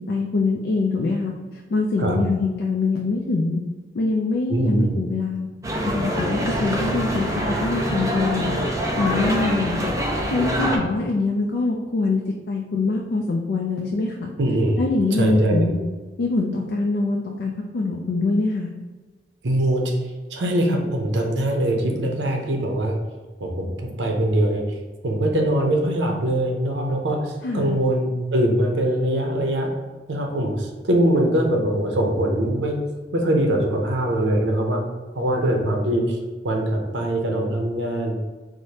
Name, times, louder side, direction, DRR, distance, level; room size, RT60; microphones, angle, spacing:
voice 1, 0.1-3.6 3.9-5.5 5.8-8.5 9.0-9.9 10.2-12.2 12.5-14.3 14.8-15.8 16.2-18.7 27.4-27.8, left 3 dB, 65° left, 1 dB, 0.3 m, -24 dB
voice 2, 4.5-4.9 14.4-14.8 15.2-15.7 19.4-19.9 20.3-23.0 23.4-24.8 25.0-29.7 30.1-32.8 33.1-34.8 35.1-36.2 36.4-38.2, right 1 dB, 85° right, 2 dB, 0.6 m, -22 dB
sound 1, 5.6-10.8, equal, 20° right, 0.4 m, -24 dB
4.7 x 2.1 x 2.8 m, 1.3 s
head